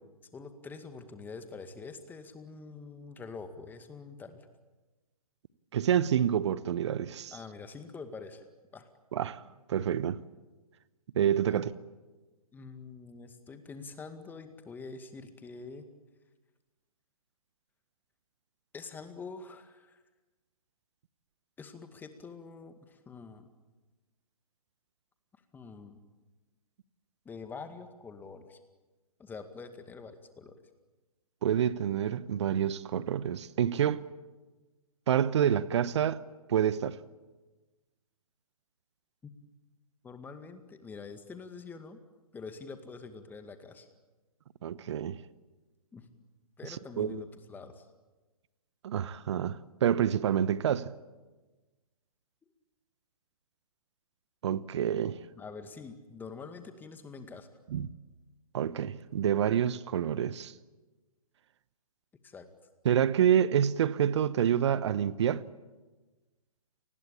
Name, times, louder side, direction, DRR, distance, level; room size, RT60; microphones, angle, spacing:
voice 1, 0.3-4.5 7.3-8.4 8.7-8.9 11.5-11.7 12.5-15.9 18.7-20.0 21.6-23.5 25.5-26.0 27.3-28.6 29.2-30.5 39.2-39.3 40.0-42.0 42.3-43.9 45.9-46.1 46.6-47.9 54.9-55.1 55.4-57.5 62.2-62.5, left 4 dB, 10° left, 2.0 m, -45 dB
voice 2, 5.7-7.3 9.1-9.4 9.7-10.2 11.1-11.7 31.4-34.0 35.1-36.2 36.5-37.0 44.6-45.2 47.0-47.2 48.8-50.9 54.4-55.1 57.7-57.9 58.5-60.5 62.8-65.4, right 9 dB, 50° right, 1.1 m, -27 dB
29.0 x 20.0 x 8.7 m
figure-of-eight pair, 130°, 19 cm